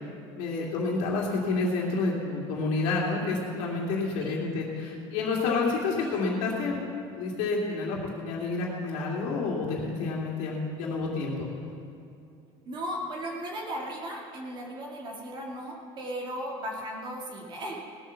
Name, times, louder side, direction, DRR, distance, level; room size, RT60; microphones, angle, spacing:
voice 1, 0.4-6.8 7.2-11.5, left 3 dB, 70° left, -3 dB, 2.6 m, -29 dB
voice 2, 12.6-17.8, equal, 40° right, -1 dB, 2.3 m, -36 dB
19.0 x 7.3 x 7.2 m, 2.6 s
cardioid pair, 150°, 13 cm